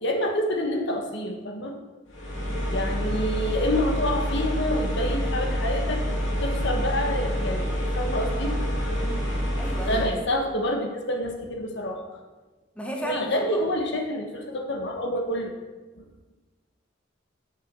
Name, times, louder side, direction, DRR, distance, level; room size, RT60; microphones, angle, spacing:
voice 1, 0.0-1.8 2.2-2.4 2.7-6.0 6.3-7.7 7.9-8.6 9.9-12.2 13.0-15.5 16.0-16.1, left 1 dB, 65° left, 3 dB, 1.3 m, -28 dB
sound 1, 2.1-10.2, equal, 80° left, 2.6 m, -27 dB
voice 2, 9.0-10.2 12.8-13.6, equal, 5° left, 0 dB, 1.3 m, -34 dB
7.5 x 6.9 x 6.1 m, 1.2 s
head